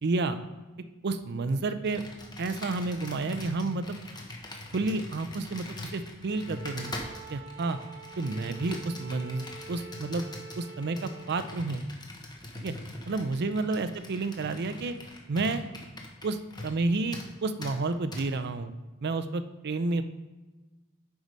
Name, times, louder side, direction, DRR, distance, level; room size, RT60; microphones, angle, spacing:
voice 1, 0.0-0.4 1.0-2.0 2.4-4.0 4.7-6.9 7.3-7.8 8.2-10.3 10.6-11.8 12.6-12.7 13.1-14.9 15.3-15.6 16.2-18.7 19.0-20.0, right 3 dB, 50° right, 11 dB, 0.5 m, -30 dB
Computer keyboard, 1.8-16.8 17.1-17.3 17.6-17.8 18.1-18.3, left 2 dB, 20° left, 1.0 m, -43 dB
Bowed string instrument, 6.3-11.3, right 3 dB, 10° right, 0.8 m, -46 dB
8.1 x 4.8 x 5.2 m, 1.2 s
head